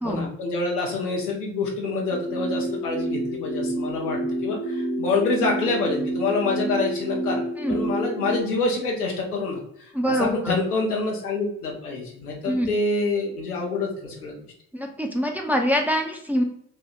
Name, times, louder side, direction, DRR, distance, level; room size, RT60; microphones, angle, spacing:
voice 1, 0.0-7.4 7.7-14.5, left 3 dB, 85° left, -1 dB, 0.7 m, -27 dB
sound 1, 2.1-8.4, right 1 dB, 45° right, 0.9 m, -28 dB
voice 2, 9.9-10.5 12.5-12.7 14.7-16.4, equal, 5° right, 1 dB, 0.6 m, -24 dB
3.5 x 2.2 x 2.9 m, 0.70 s
figure-of-eight pair, 40°, 44 cm